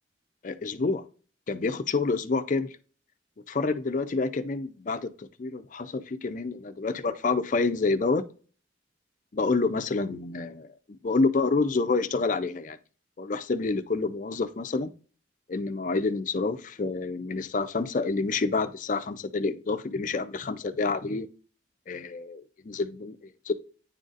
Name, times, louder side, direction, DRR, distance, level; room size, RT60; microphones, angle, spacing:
voice 1, 0.4-1.0 1.5-2.8 3.5-8.2 9.3-12.8 13.2-14.9 15.5-21.3 21.9-23.5, left 3 dB, 40° left, 0.4 m, -28 dB
9.6 x 3.9 x 2.5 m
head